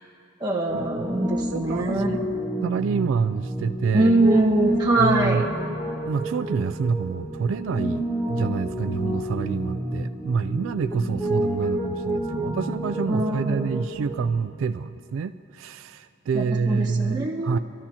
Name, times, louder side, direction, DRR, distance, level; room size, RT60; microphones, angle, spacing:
voice 1, 0.4-2.3 3.9-5.4 12.3-13.7 16.3-17.6, right 2 dB, 20° right, -5 dB, 1.5 m, -24 dB
Piano, 0.7-14.4, right 1 dB, 10° left, 1.2 m, -29 dB
voice 2, 1.5-2.2 2.6-4.1 5.0-5.4 6.1-17.6, right 5 dB, 75° right, 9 dB, 0.3 m, -27 dB
24.5 x 13.5 x 2.9 m, 2.8 s
head